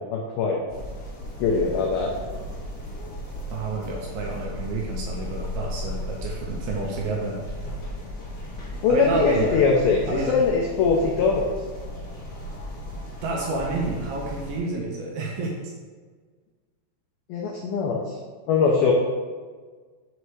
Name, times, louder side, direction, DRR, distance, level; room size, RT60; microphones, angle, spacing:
voice 1, 0.1-0.6 1.4-2.1 8.8-11.5 17.3-18.2 18.5-18.9, left 5 dB, 90° left, 0 dB, 2.1 m, -22 dB
sound 1, 0.7-14.6, left 1 dB, 45° left, 1.5 m, -35 dB
voice 2, 3.5-7.4 8.9-9.6 10.1-10.3 13.2-15.7, right 3 dB, 80° right, -2 dB, 2.3 m, -29 dB
6.6 x 3.1 x 4.6 m, 1.5 s
omnidirectional pair, 4.9 m